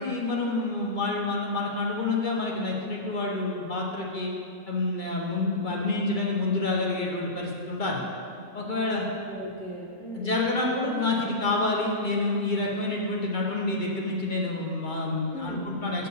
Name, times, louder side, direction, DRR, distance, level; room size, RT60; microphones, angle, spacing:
voice 1, 0.0-4.3 4.7-8.0 8.5-9.1 10.1-16.1, left 2 dB, 40° left, -2 dB, 1.0 m, -28 dB
voice 2, 8.7-10.4 15.3-15.7, right 1 dB, ahead, -6 dB, 0.9 m, -37 dB
7.9 x 4.7 x 6.6 m, 2.4 s
omnidirectional pair, 1.5 m